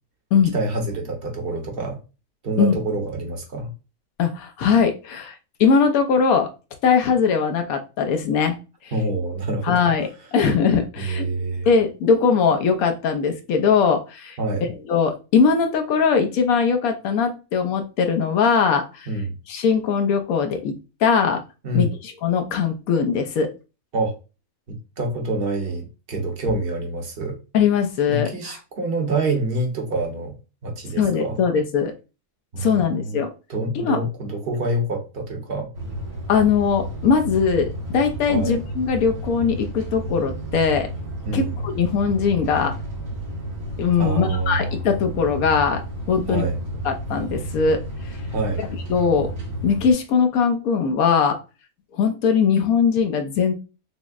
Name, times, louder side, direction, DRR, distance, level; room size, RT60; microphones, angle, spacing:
voice 1, 0.5-2.0 2.4-3.7 8.9-9.8 11.0-11.7 14.4-14.7 19.1-19.3 21.6-21.9 23.9-24.1 24.7-27.4 28.1-30.3 30.6-31.4 32.5-33.2 33.5-35.7 38.3-38.6 41.2-41.5 44.0-44.7 46.3-46.6 48.3-48.6, right 2 dB, 45° right, 2 dB, 1.0 m, -26 dB
voice 2, 4.2-5.3 5.6-6.5 6.8-8.6 9.7-11.3 11.7-14.4 14.9-19.1 19.5-20.7 21.0-21.4 21.7-23.5 27.5-28.5 31.0-31.9 32.6-33.3 33.7-34.0 36.3-40.9 41.3-42.8 43.8-45.8 46.1-46.5 46.8-47.8 48.9-49.3 49.6-51.4 51.9-53.5, left 6 dB, 80° left, 6 dB, 1.0 m, -20 dB
sound 1, 35.7-49.9, right 1 dB, 85° right, 2.0 m, -32 dB
5.9 x 2.0 x 2.3 m, 0.31 s
omnidirectional pair, 1.5 m